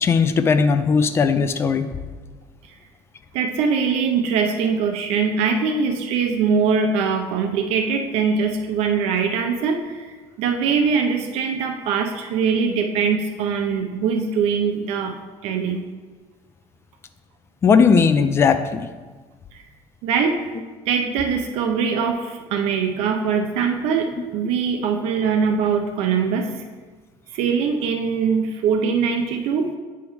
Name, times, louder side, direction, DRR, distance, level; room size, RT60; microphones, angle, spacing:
voice 1, 0.0-1.9 17.6-18.9, left 5 dB, 25° left, 10 dB, 0.3 m, -17 dB
voice 2, 3.3-10.1 10.4-15.1 15.4-15.8 20.0-20.4 20.9-26.5 27.3-29.7, right 6 dB, 85° right, 5 dB, 0.5 m, -22 dB
8.3 x 3.5 x 4.7 m, 1.4 s
cardioid pair, 155°, 10 cm